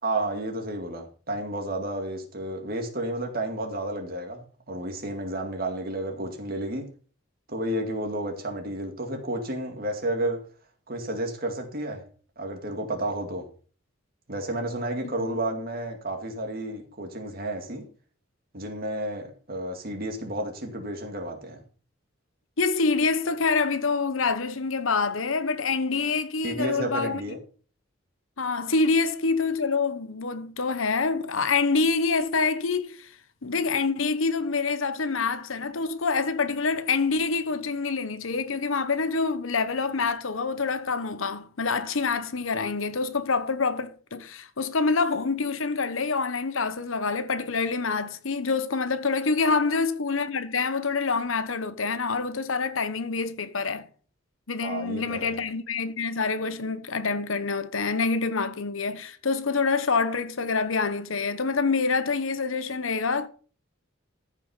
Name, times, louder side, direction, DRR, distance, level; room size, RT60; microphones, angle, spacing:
voice 1, 0.0-6.9 7.5-10.4 10.9-12.0 12.4-13.5 14.3-17.8 18.5-21.6 26.4-27.4 49.4-49.7 54.6-55.4, right 1 dB, 45° right, 2.3 m, -31 dB
voice 2, 22.6-27.2 28.4-33.1 33.4-53.9 54.5-63.3, left 4 dB, 75° left, 1.0 m, -26 dB
14.0 x 5.7 x 5.7 m
head